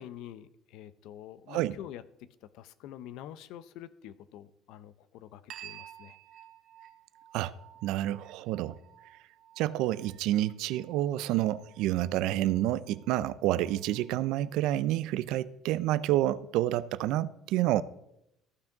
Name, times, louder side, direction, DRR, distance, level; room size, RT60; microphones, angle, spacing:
voice 1, 0.0-6.2, left 11 dB, 65° left, 0.5 m, -47 dB
sound 1, 5.5-14.5, right 11 dB, 50° right, 0.8 m, -54 dB
voice 2, 7.8-8.8 9.6-17.8, right 14 dB, 65° right, 0.4 m, -29 dB
14.0 x 5.9 x 3.9 m
cardioid pair, 165°, 0 cm